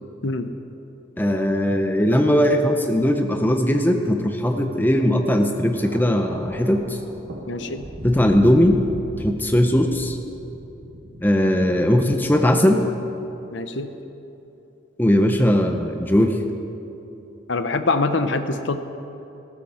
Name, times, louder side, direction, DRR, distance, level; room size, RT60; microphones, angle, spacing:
voice 1, 1.2-7.0 8.0-8.8 9.2-10.2 11.2-12.8 15.0-16.4, equal, 10° left, 4 dB, 0.8 m, -19 dB
Thunder, 5.7-12.1 13.1-13.3, right 1 dB, 50° right, 1.8 m, -38 dB
voice 2, 7.5-7.8 13.5-13.9 17.5-18.8, left 3 dB, 60° left, 9 dB, 0.8 m, -24 dB
18.5 x 16.0 x 4.4 m, 2.9 s
head